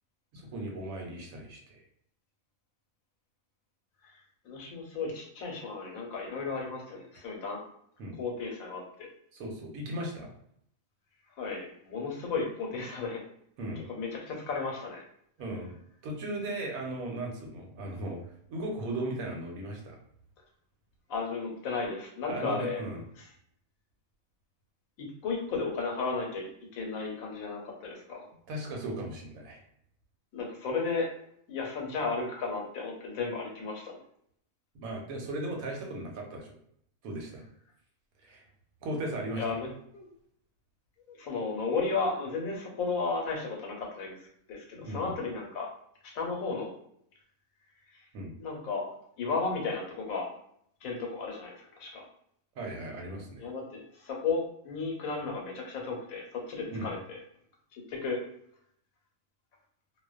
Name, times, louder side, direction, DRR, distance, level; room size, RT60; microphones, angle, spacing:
voice 1, 0.3-1.8 8.0-8.2 9.3-10.3 13.6-13.8 15.4-15.7 16.0-18.2 18.5-20.0 22.3-23.0 28.5-29.6 34.8-36.6 37.0-37.4 38.2-38.4 38.8-39.4 44.7-45.2 48.1-48.3 52.6-53.4 56.7-56.9, right 1 dB, 85° right, 1 dB, 1.1 m, -37 dB
voice 2, 4.0-7.6 8.2-9.1 11.4-13.2 13.9-15.0 21.1-22.8 25.0-28.3 30.3-31.2 31.5-33.9 39.4-40.1 41.0-45.7 46.0-46.7 47.9-48.1 48.4-50.3 50.8-52.0 53.4-57.2 57.7-58.2, left 4 dB, 90° left, 0 dB, 1.1 m, -34 dB
2.5 x 2.1 x 2.3 m, 0.70 s
omnidirectional pair, 1.4 m